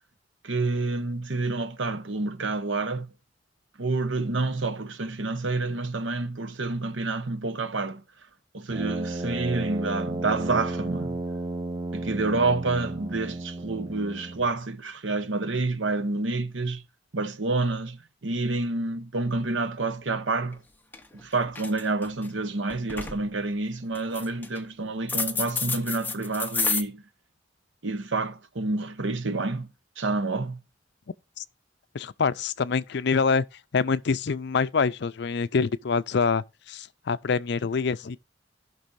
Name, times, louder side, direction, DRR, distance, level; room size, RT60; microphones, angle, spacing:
voice 1, 0.4-3.1 3.8-8.0 8.5-11.2 11.9-16.8 17.1-20.6 21.2-27.0 27.8-29.7 30.0-30.6, right 3 dB, 80° right, 1.0 m, -28 dB
Brass instrument, 8.7-14.6, right 2 dB, 25° right, 0.6 m, -33 dB
sound 1, 20.5-20.6 20.9-21.2 21.5-22.3 22.7-23.2 23.9-24.6 25.1-26.8, left 4 dB, 10° left, 0.9 m, -29 dB
voice 2, 31.9-33.4 33.7-38.2, left 5 dB, 65° left, 0.5 m, -25 dB
17.5 x 6.0 x 2.6 m
head